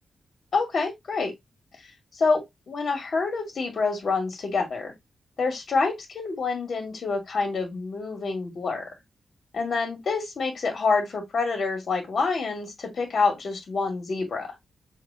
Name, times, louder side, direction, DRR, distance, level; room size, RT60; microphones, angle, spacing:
voice 1, 0.5-1.3 2.2-4.9 5.4-8.9 9.5-14.5, left 4 dB, 50° left, 2.2 m, -27 dB
6.5 x 2.8 x 2.8 m
wide cardioid pair, 150°, 0 cm